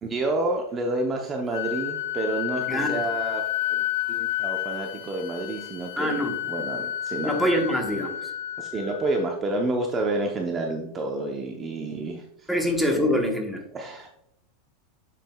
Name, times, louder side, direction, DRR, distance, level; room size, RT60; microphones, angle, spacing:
voice 1, 0.0-6.2 6.5-7.4 8.6-12.5 12.9-13.1 13.7-14.1, right 2 dB, 20° right, 1 dB, 0.7 m, -29 dB
Wind instrument woodwind instrument, 1.5-9.3, left 13 dB, 85° left, 0.4 m, -31 dB
voice 2, 6.0-6.4 7.2-8.3 12.5-13.6, equal, ahead, 2 dB, 1.0 m, -25 dB
7.4 x 7.4 x 2.2 m, 0.80 s
supercardioid pair, 155°, 0 cm